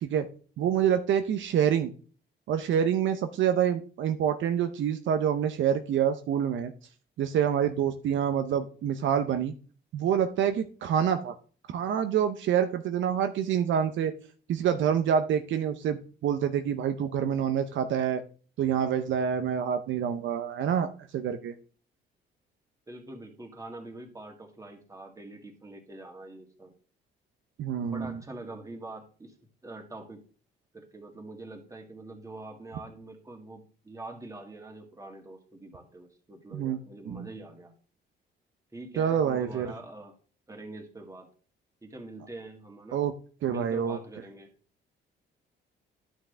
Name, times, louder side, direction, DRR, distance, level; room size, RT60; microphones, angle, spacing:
voice 1, 0.6-1.9 2.5-6.7 7.2-9.5 9.9-11.3 11.7-14.1 14.5-18.2 18.6-21.5 27.6-28.2 36.5-36.8 37.1-37.3 39.0-39.7 42.9-43.1 43.4-44.0, right 8 dB, 75° right, 8 dB, 0.7 m, -27 dB
voice 2, 22.9-26.7 27.8-29.3 29.6-30.2 30.7-37.8 38.7-40.2 40.5-41.3 41.8-43.0 43.5-44.5, right 2 dB, 15° right, 2 dB, 2.0 m, -44 dB
11.0 x 6.2 x 3.4 m, 0.41 s
cardioid pair, 90°, 20 cm